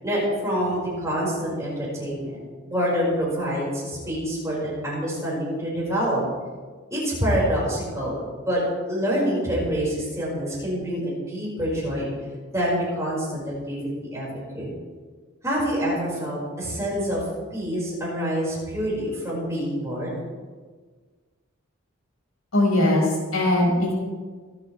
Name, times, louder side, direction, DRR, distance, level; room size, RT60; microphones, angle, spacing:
voice 1, 0.0-2.4 2.6-6.2 6.9-8.6 8.9-12.1 12.5-14.7 15.4-17.2 17.5-20.2, equal, 15° right, -6 dB, 5.2 m, -26 dB
voice 2, 22.5-23.9, left 1 dB, 80° left, -3 dB, 4.9 m, -20 dB
24.5 x 9.3 x 3.3 m, 1.5 s
head